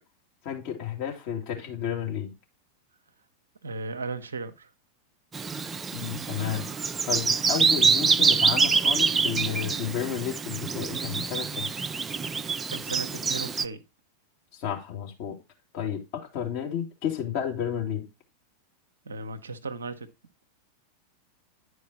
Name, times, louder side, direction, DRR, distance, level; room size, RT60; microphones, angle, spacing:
voice 1, 0.4-2.3 5.9-6.7 7.1-11.7 14.6-15.4 15.7-18.1, left 9 dB, 45° left, 2.3 m, -32 dB
voice 2, 3.6-4.7 12.7-13.8 19.1-20.1, right 3 dB, 70° right, 0.7 m, -36 dB
Bird vocalization bird call bird song, 5.3-13.7, right 5 dB, 15° right, 0.4 m, -25 dB
10.0 x 4.8 x 4.0 m
figure-of-eight pair, 90°, 0 cm